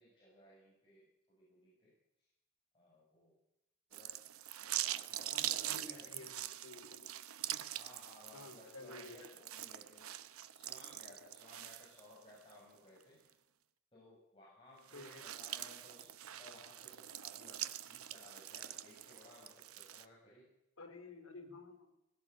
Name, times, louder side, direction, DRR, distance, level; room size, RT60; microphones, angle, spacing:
voice 1, 0.0-1.9 2.7-3.4 3.9-4.2 4.6-6.1 7.6-10.1 10.5-13.3 13.9-16.1 16.4-20.5, left 1 dB, 25° left, -6 dB, 7.3 m, -60 dB
sound 1, 3.9-12.5 13.0-13.1 14.8-20.0, right 12 dB, 90° right, 1.0 m, -44 dB
voice 2, 5.3-7.1 8.3-9.3 14.9-15.2 20.8-21.9, left 3 dB, 85° left, 7 dB, 3.9 m, -52 dB
19.5 x 17.0 x 8.2 m, 0.88 s
head